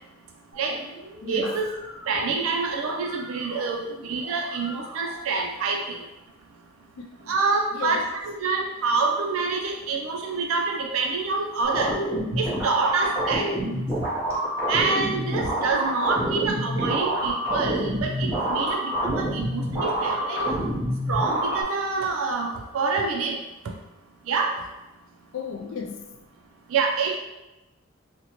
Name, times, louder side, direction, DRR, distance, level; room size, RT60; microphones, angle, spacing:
sound 1, 0.5-5.5, equal, 45° right, 1.3 m, -43 dB
voice 1, 1.3-1.7 2.1-6.0 7.3-11.9 12.4-13.5 14.7-20.6 21.1-23.4 24.3-24.6 26.7-27.2, right 4 dB, 75° right, 1 dB, 0.4 m, -26 dB
voice 2, 7.0-7.3 7.7-8.1 25.3-26.1, left 6 dB, 60° left, 1 dB, 0.3 m, -34 dB
sound 2, 11.6-21.6, right 1 dB, 15° right, 0.7 m, -27 dB
4.0 x 2.1 x 2.8 m, 1.0 s
head